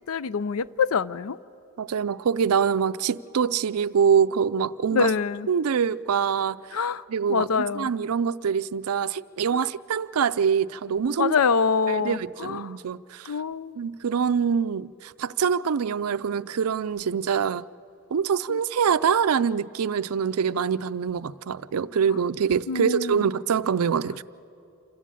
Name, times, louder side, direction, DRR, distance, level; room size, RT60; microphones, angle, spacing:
voice 1, 0.1-1.4 4.9-5.5 6.7-7.9 9.5-9.6 11.2-12.8 13.2-13.8 18.5-18.6 22.7-23.3, left 5 dB, 70° left, 0.5 m, -25 dB
voice 2, 1.8-5.1 5.5-6.6 7.1-11.3 11.9-13.3 13.8-17.7 18.1-24.2, right 7 dB, 80° right, 0.4 m, -25 dB
27.0 x 15.0 x 8.5 m
head